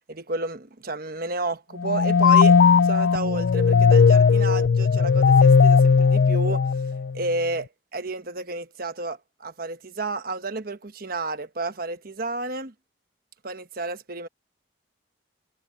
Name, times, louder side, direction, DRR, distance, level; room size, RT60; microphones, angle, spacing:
voice 1, 0.1-6.7 7.1-12.7 13.4-14.3, right 2 dB, 50° right, 1.2 m, -31 dB
sound 1, 1.8-7.3, left 5 dB, 70° left, 0.4 m, -17 dB
head